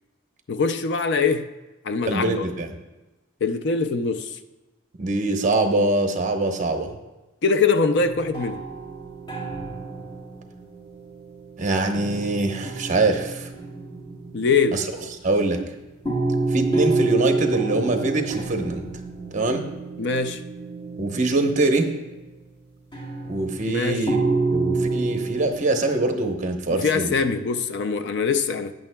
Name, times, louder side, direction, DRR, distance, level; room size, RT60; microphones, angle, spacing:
voice 1, 0.5-1.5 1.8-2.5 3.4-4.4 7.4-8.6 14.3-14.8 20.0-20.4 23.6-24.1 26.7-28.7, left 4 dB, 60° left, 10 dB, 0.5 m, -23 dB
voice 2, 2.1-2.7 5.0-6.9 11.6-13.5 14.7-14.8 15.2-15.6 16.5-18.9 19.3-19.7 21.0-21.9 23.3-24.2 24.5-27.2, right 2 dB, 40° right, 4 dB, 0.9 m, -23 dB
sound 1, 7.9-11.5 11.9-15.2 16.0-22.1 22.9-25.5, right 3 dB, 25° left, 1.9 m, -28 dB
12.5 x 9.2 x 2.2 m, 1.1 s
head